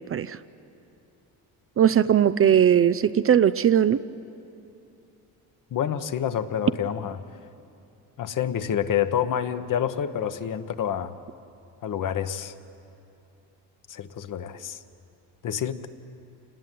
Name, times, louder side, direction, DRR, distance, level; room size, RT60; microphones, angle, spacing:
voice 1, 1.8-4.0, right 9 dB, 35° right, 13 dB, 0.5 m, -19 dB
voice 2, 5.7-7.2 8.2-11.1 11.8-12.5 13.9-14.8 15.4-15.9, left 9 dB, 50° left, 10 dB, 1.2 m, -28 dB
27.5 x 19.5 x 9.3 m, 2.7 s
cardioid pair, 105°, 42 cm